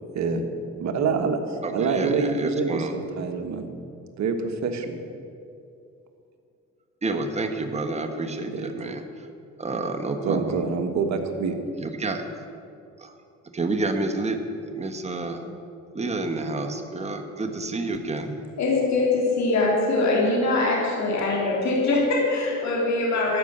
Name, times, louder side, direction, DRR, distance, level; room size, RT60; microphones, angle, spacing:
voice 1, 0.8-1.4 1.7-3.7 4.2-5.0 8.5-8.7 10.2-11.6, right 5 dB, 65° right, 5 dB, 1.4 m, -26 dB
voice 2, 1.6-2.9 7.0-9.3 9.6-10.6 11.8-12.2 13.0-13.1 13.5-15.6 15.9-18.4, right 2 dB, 20° right, 5 dB, 1.1 m, -29 dB
voice 3, 18.6-23.4, left 2 dB, 65° left, -3 dB, 3.1 m, -22 dB
13.0 x 5.3 x 8.8 m, 2.5 s
cardioid pair, 90°, 30 cm